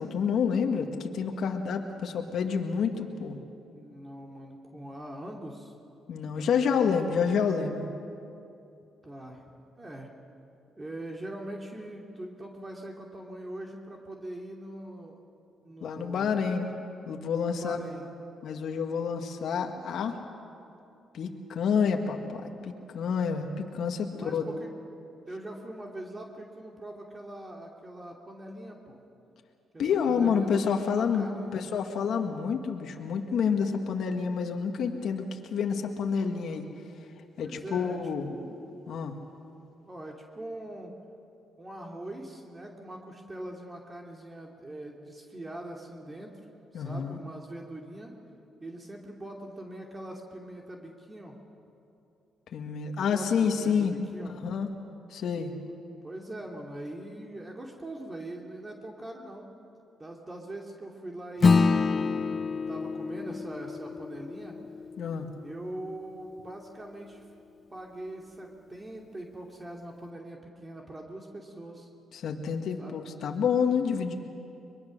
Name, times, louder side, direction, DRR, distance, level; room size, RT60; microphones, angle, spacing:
voice 1, 0.0-3.4 6.1-7.9 15.8-16.7 17.1-17.8 18.4-20.1 21.1-24.4 29.8-36.6 37.4-38.3 38.9-39.1 46.7-47.2 52.5-54.0 54.4-54.7 55.1-55.5 65.0-65.3 72.1-74.1, left 6 dB, 70° left, 4 dB, 1.6 m, -28 dB
voice 2, 3.7-5.7 8.6-8.7 9.0-9.4 9.8-10.1 10.8-15.2 15.6-16.5 17.4-18.1 24.1-24.7 25.2-29.0 29.7-31.6 37.4-38.0 38.3-38.6 39.8-40.9 41.6-46.3 46.7-48.1 48.6-51.4 53.0-54.4 56.0-59.5 60.0-64.6 65.4-67.2 67.7-71.9 72.8-73.1, right 1 dB, 25° right, 0 dB, 2.6 m, -42 dB
Acoustic guitar / Strum, 61.4-66.2, left 4 dB, 45° left, 0.7 m, -27 dB
23.0 x 22.0 x 6.5 m, 2.7 s
cardioid pair, 70°, 0 cm